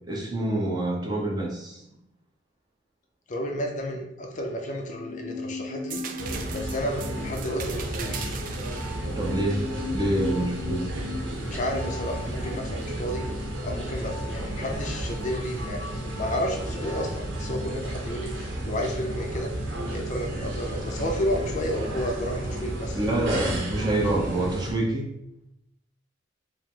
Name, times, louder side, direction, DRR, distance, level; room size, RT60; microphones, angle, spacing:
voice 1, 0.1-1.8 9.2-9.6 9.9-10.9 23.0-25.1, right 1 dB, 20° right, -2 dB, 0.7 m, -26 dB
voice 2, 3.3-6.0 6.5-8.4 11.4-13.3 13.6-19.5 19.9-23.0, equal, 40° left, 2 dB, 0.5 m, -31 dB
sound 1, 4.8-14.1 14.4-14.5, left 3 dB, 90° left, 0.8 m, -39 dB
sound 2, 5.9-11.5 12.0-13.0 15.0-15.2, right 8 dB, 45° right, 0.3 m, -41 dB
sound 3, 6.2-24.7, right 1 dB, 85° right, 0.8 m, -32 dB
4.7 x 2.1 x 3.6 m, 0.81 s
head